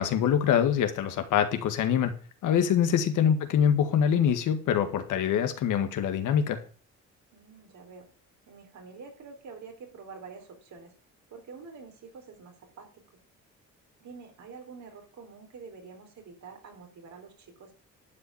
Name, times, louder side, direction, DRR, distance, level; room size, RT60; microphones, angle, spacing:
voice 1, 0.0-2.2 2.4-6.6, left 8 dB, 85° left, 7 dB, 1.8 m, -24 dB
voice 2, 7.3-8.1 8.5-10.9 11.3-13.0 14.0-17.7, right 5 dB, 70° right, 4 dB, 4.0 m, -47 dB
11.5 x 5.1 x 8.6 m, 0.40 s
cardioid pair, 90°, 30 cm